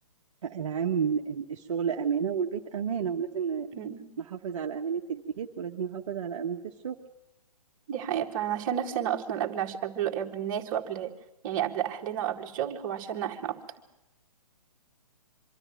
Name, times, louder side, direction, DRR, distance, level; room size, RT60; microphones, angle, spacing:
voice 1, 0.4-3.7 4.2-7.0, right 7 dB, 50° right, 1 dB, 1.3 m, -31 dB
voice 2, 3.7-4.1 7.9-11.1 11.4-13.6, right 10 dB, 30° right, 1 dB, 2.0 m, -31 dB
24.5 x 13.0 x 9.1 m, 0.94 s
figure-of-eight pair, 130°, 20 cm